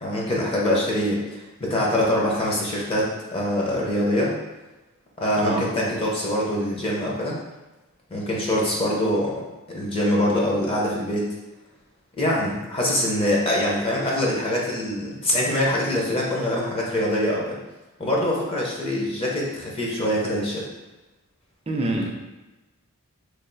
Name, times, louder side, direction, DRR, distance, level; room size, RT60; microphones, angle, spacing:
voice 1, 0.0-4.4 5.2-7.4 8.1-9.4 9.7-11.3 12.2-17.6 18.0-20.7, left 1 dB, 25° left, -4 dB, 0.7 m, -24 dB
voice 2, 21.7-22.1, right 2 dB, 25° right, 0 dB, 0.5 m, -25 dB
3.2 x 2.5 x 3.9 m, 1.1 s
head